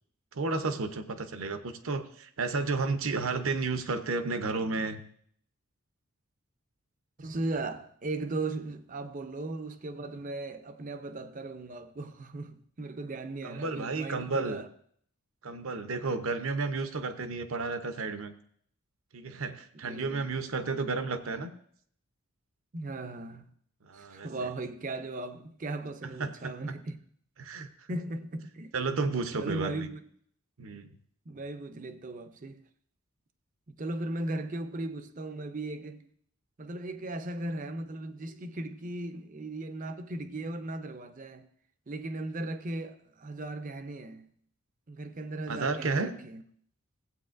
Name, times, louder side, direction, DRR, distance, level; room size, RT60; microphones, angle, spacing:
voice 1, 0.3-5.0 13.4-14.6 15.4-18.3 19.1-21.5 23.9-24.3 26.2-26.5 27.4-27.7 28.7-29.9 30.6-30.9 45.5-46.1, right 3 dB, 70° right, 0.8 m, -32 dB
voice 2, 7.2-14.7 19.8-20.3 22.7-23.5 23.9-27.0 27.9-28.7 29.4-30.0 31.3-32.6 33.7-36.1 36.6-41.5 41.9-44.3 44.9-46.4, right 2 dB, 35° right, 0.6 m, -37 dB
16.0 x 8.2 x 2.5 m
head